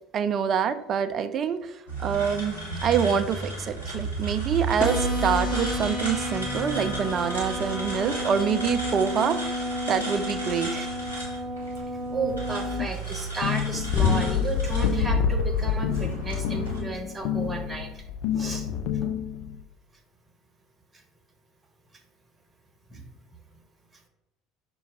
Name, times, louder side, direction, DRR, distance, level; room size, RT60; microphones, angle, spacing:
voice 1, 0.1-10.9, right 7 dB, 40° right, 10 dB, 0.3 m, -26 dB
sound 1, 1.9-16.8, right 2 dB, 85° left, 0.9 m, -34 dB
sound 2, 4.8-12.8, left 1 dB, 35° left, 1.0 m, -32 dB
voice 2, 12.1-18.0 18.4-18.7 22.9-23.1, right 3 dB, 20° right, 3 dB, 0.9 m, -33 dB
sound 3, 13.4-19.6, left 7 dB, 60° left, 0.4 m, -26 dB
5.5 x 2.3 x 3.4 m, 0.90 s
figure-of-eight pair, 60°, 0 cm